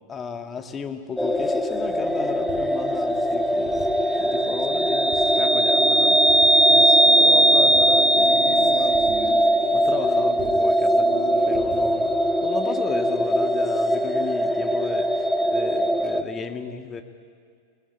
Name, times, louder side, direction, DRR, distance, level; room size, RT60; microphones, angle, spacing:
voice 1, 0.1-3.9 4.2-9.1 9.7-17.0, left 5 dB, 20° left, 6 dB, 1.8 m, -34 dB
sound 1, 1.2-16.2, right 1 dB, 5° left, 1.3 m, -20 dB
sound 2, 1.8-12.4, right 6 dB, 40° right, 6.7 m, -42 dB
22.0 x 20.0 x 9.7 m, 2.1 s
figure-of-eight pair, 90°, 0 cm